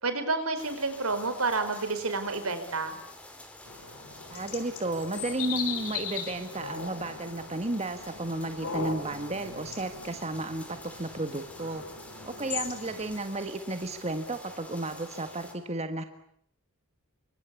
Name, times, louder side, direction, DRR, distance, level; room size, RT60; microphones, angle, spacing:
voice 1, 0.0-3.0, right 3 dB, 80° right, 10 dB, 4.7 m, -29 dB
sound 1, 0.6-15.5, left 1 dB, 5° left, 4.5 m, -48 dB
sound 2, 3.7-13.2, left 6 dB, 90° left, 5.1 m, -39 dB
voice 2, 4.3-11.8 12.2-16.0, right 2 dB, 30° right, 8 dB, 1.6 m, -33 dB
28.0 x 25.0 x 8.4 m, 0.67 s
head